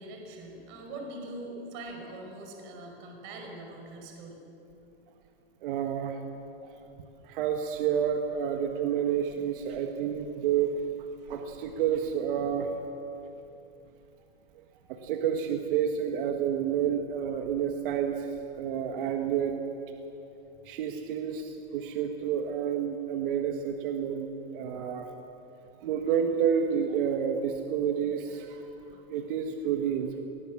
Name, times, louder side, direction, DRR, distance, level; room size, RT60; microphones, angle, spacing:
voice 1, 0.0-4.4, right 2 dB, 40° right, 2 dB, 5.1 m, -42 dB
voice 2, 5.6-6.2 7.2-10.7 11.3-12.7 14.9-18.3 18.5-19.6 20.7-24.3 24.5-25.1 25.8-28.7 29.1-30.2, right 8 dB, 55° right, 4 dB, 1.7 m, -29 dB
23.5 x 19.0 x 7.4 m, 2.9 s
supercardioid pair, 150°, 31 cm